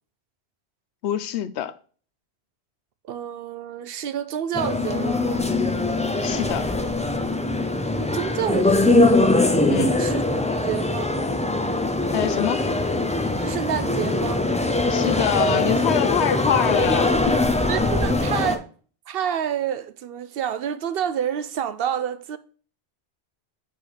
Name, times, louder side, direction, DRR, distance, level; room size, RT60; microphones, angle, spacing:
voice 1, 1.0-1.8 6.2-6.7 9.7-9.9 12.1-12.7 14.9-17.5, left 10 dB, 90° left, 0.9 m, -25 dB
voice 2, 3.1-5.4 8.0-9.2 9.9-10.2 10.6-11.1 13.4-14.4 17.7-18.7 19.1-22.4, right 9 dB, 65° right, 0.7 m, -28 dB
sound 1, 4.5-18.6, left 2 dB, 10° left, 0.3 m, -22 dB
5.3 x 5.0 x 4.1 m
omnidirectional pair, 1.1 m